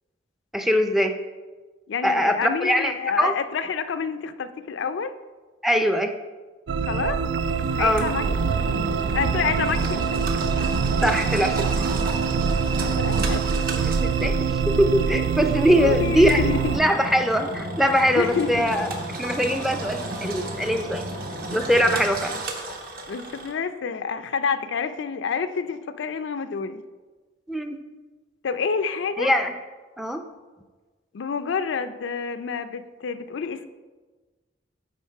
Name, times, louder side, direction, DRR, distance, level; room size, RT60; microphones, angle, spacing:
voice 1, 0.5-1.2 2.0-3.3 5.6-6.1 7.8-8.1 11.0-11.7 13.9-14.4 14.7-16.4 16.7-18.9 19.2-21.0 21.5-22.3 27.5-27.8 29.2-29.5 30.0-30.2, equal, ahead, 5 dB, 0.4 m, -22 dB
voice 2, 1.9-5.2 6.8-7.2 7.7-8.5 9.1-10.2 12.6-13.4 15.7-16.8 18.1-18.6 23.1-26.8 28.4-29.3 31.1-33.7, left 5 dB, 80° left, 11 dB, 0.4 m, -28 dB
sound 1, 6.7-16.8, right 6 dB, 75° right, 0.3 m, -24 dB
Engine, 7.4-23.5, right 1 dB, 50° right, 0.9 m, -33 dB
9.3 x 3.7 x 4.5 m, 1.3 s
head